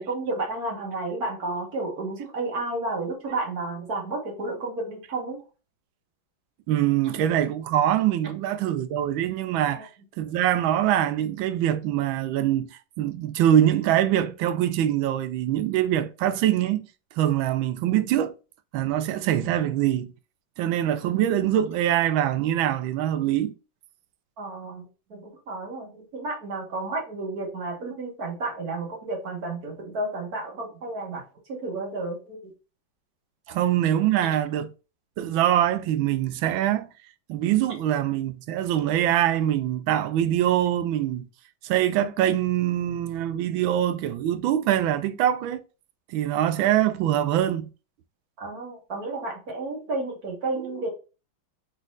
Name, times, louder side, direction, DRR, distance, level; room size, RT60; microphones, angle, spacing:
voice 1, 0.0-5.4 9.7-9.8 24.4-32.5 33.5-33.6 48.4-50.9, right 2 dB, 50° right, 1.7 m, -32 dB
voice 2, 6.7-9.9 10.2-16.9 17.2-18.4 18.7-20.1 20.6-23.5 33.5-34.7 35.2-36.9 37.3-41.3 41.6-45.6 46.1-47.7, right 11 dB, 80° right, 1.3 m, -23 dB
5.1 x 4.0 x 2.4 m
omnidirectional pair, 2.2 m